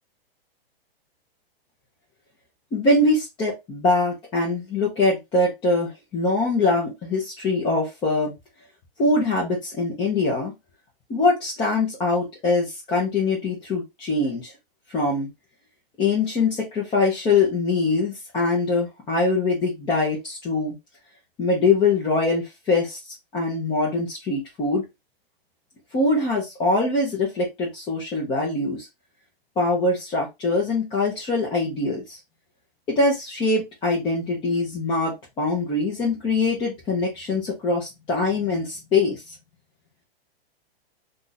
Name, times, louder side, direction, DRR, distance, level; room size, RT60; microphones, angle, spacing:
voice 1, 2.7-8.3 9.0-10.5 11.1-14.5 14.9-15.3 16.0-20.7 21.4-23.0 23.3-24.8 25.9-28.9 29.6-32.2 32.9-39.3, left 3 dB, 15° left, -4 dB, 0.9 m, -23 dB
2.7 x 2.5 x 4.0 m, 0.21 s
hypercardioid pair, 150°, 31 cm